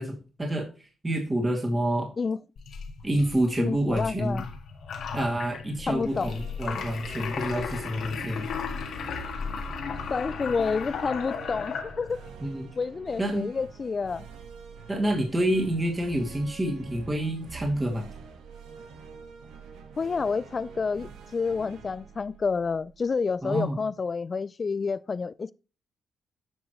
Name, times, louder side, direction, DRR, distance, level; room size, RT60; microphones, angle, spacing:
voice 1, 0.0-2.1 3.0-4.4 5.1-8.5 12.4-12.7 13.2-13.5 14.9-18.1 23.4-23.8, right 1 dB, 20° right, 2.5 m, -28 dB
Sink emptying, 2.6-12.3, left 6 dB, 70° left, 1.7 m, -36 dB
voice 2, 3.6-4.4 5.9-6.3 10.1-12.2 12.8-14.3 20.0-25.5, left 5 dB, 40° left, 0.3 m, -29 dB
sound 1, 5.9-23.4, right 5 dB, 85° right, 1.3 m, -46 dB
9.8 x 6.2 x 3.1 m
cardioid pair, 65°, 0 cm